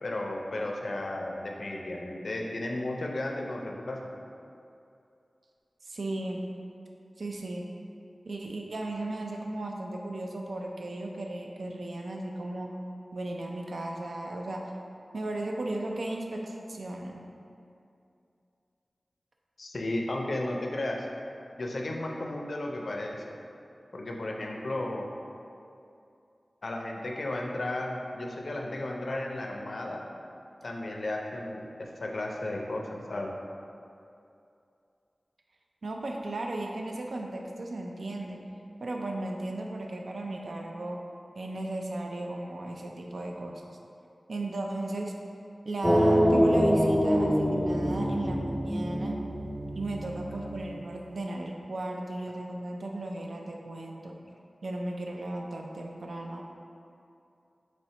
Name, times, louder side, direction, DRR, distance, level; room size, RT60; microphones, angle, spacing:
voice 1, 0.0-4.0 19.6-21.1 21.6-23.2 23.9-25.1 26.6-30.0 30.6-33.3, left 1 dB, 70° left, 0 dB, 0.4 m, -34 dB
voice 2, 5.8-6.4 7.2-7.6 8.3-12.7 13.1-14.7 15.1-17.2 35.8-38.4 38.8-41.0 41.4-43.6 44.3-45.1 45.7-49.2 49.8-54.2 54.6-56.4, right 2 dB, 80° right, 1 dB, 0.4 m, -35 dB
sound 1, 45.8-50.8, equal, 5° right, 0.4 m, -25 dB
3.1 x 2.8 x 4.2 m, 2.6 s
wide cardioid pair, 80°, 0 cm